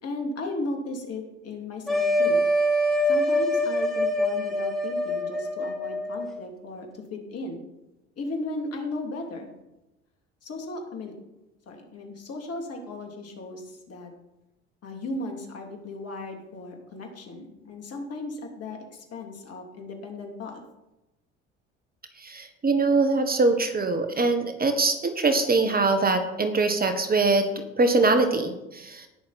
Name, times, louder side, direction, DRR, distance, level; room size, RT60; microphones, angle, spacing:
voice 1, 0.0-2.4 3.1-7.6 8.2-9.5 10.4-11.2 11.7-14.1 14.8-20.6, left 2 dB, 50° left, 2 dB, 3.0 m, -36 dB
sound 1, 1.9-6.3, left 1 dB, ahead, 3.8 m, -24 dB
voice 2, 22.2-29.1, right 3 dB, 25° right, 7 dB, 1.5 m, -23 dB
18.5 x 6.5 x 4.3 m, 0.96 s
hypercardioid pair, 60°, 32 cm